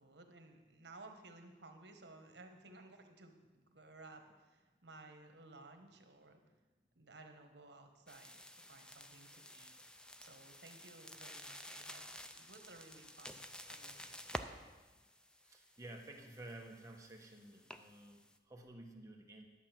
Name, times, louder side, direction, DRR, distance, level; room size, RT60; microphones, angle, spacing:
voice 1, 0.0-6.4 6.9-9.7 10.2-14.4, right 2 dB, 75° right, 6 dB, 1.3 m, -58 dB
sound 1, 8.1-18.4, left 1 dB, 5° left, 0.4 m, -52 dB
voice 2, 15.4-19.5, right 1 dB, 20° right, 1 dB, 1.2 m, -53 dB
11.0 x 7.6 x 6.0 m, 1.2 s
head